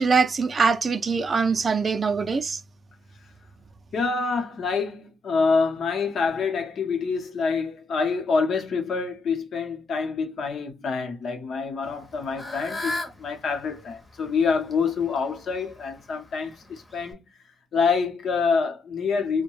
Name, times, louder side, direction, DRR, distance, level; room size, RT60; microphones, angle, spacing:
voice 1, 0.0-2.6, right 5 dB, 35° right, 0.4 m, -23 dB
voice 2, 3.9-17.2 17.7-19.4, left 5 dB, 60° left, 0.8 m, -26 dB
Fowl / Bird, 11.8-17.1, left 2 dB, 15° left, 0.7 m, -38 dB
2.7 x 2.1 x 3.0 m
wide cardioid pair, 145°, 0 cm